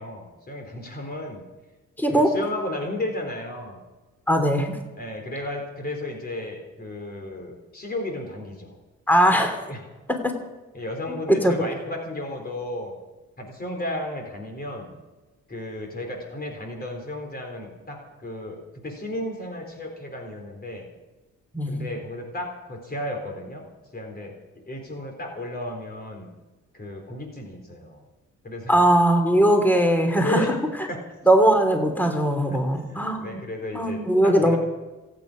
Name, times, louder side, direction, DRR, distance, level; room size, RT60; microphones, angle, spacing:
voice 1, 0.0-1.4 2.1-3.8 5.0-8.8 9.7-9.8 10.7-12.9 13.4-14.9 15.5-20.9 21.7-23.7 23.9-24.4 24.7-26.3 26.7-28.0 28.4-28.8 30.2-30.6 30.9-31.0 32.5-34.6, left 1 dB, 30° left, 2 dB, 4.1 m, -33 dB
voice 2, 2.0-2.3 4.3-4.8 9.1-9.6 10.1-10.3 11.3-11.5 21.5-21.9 28.7-30.5 31.3-33.4 33.7-34.6, right 1 dB, 5° left, 4 dB, 3.1 m, -20 dB
27.0 x 9.6 x 5.2 m, 1.2 s
cardioid pair, 90°, 30 cm